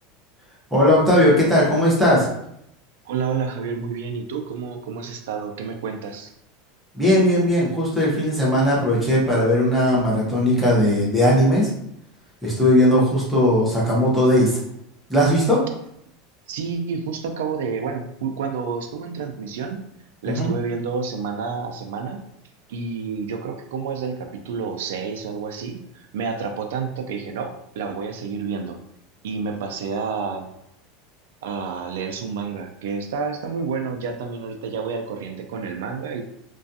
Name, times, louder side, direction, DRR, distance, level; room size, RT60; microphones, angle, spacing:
voice 1, 0.7-2.3 6.9-11.7 12.4-14.6 15.1-15.6 20.3-20.5, equal, 5° right, -6 dB, 0.7 m, -18 dB
voice 2, 3.1-6.3 16.5-19.8 20.2-22.2 22.7-28.8 29.2-30.5 31.4-36.2, right 5 dB, 85° right, 4 dB, 0.4 m, -29 dB
2.4 x 2.2 x 2.6 m, 0.76 s
supercardioid pair, 170°, 0 cm